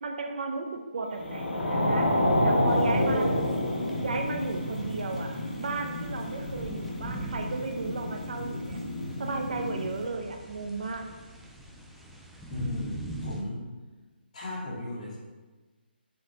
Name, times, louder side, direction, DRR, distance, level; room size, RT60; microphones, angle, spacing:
voice 1, 0.0-2.1 2.4-3.2 4.0-8.8 9.2-11.1, right 3 dB, 50° right, 4 dB, 1.0 m, -34 dB
sound 1, 1.2-9.9, left 1 dB, 90° left, 2.1 m, -29 dB
sound 2, 2.7-13.4, equal, ahead, 0.3 m, -43 dB
voice 2, 2.9-3.4 12.5-13.6 14.3-15.2, left 1 dB, 40° left, -5 dB, 2.5 m, -35 dB
7.7 x 4.3 x 5.9 m, 1.2 s
hypercardioid pair, 170°, 6 cm